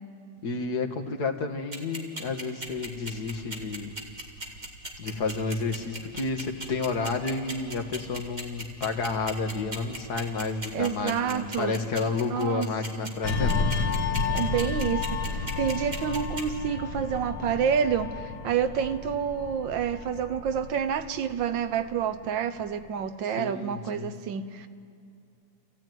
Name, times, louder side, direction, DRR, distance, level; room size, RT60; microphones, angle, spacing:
voice 1, 0.4-4.0 5.0-13.9 23.4-24.1, left 4 dB, 60° left, 5 dB, 1.9 m, -31 dB
sound 1, 1.7-16.4, right 1 dB, 25° right, 2.2 m, -36 dB
sound 2, 2.7-20.7, equal, 60° right, 2.3 m, -52 dB
voice 2, 10.7-11.8 12.2-12.7 13.0-13.1 14.3-24.7, right 8 dB, 85° right, 11 dB, 1.6 m, -28 dB
sound 3, 13.2-22.3 22.6-22.9, left 4 dB, 85° left, 1.7 m, -31 dB
28.0 x 15.5 x 9.3 m, 2.5 s
omnidirectional pair, 2.0 m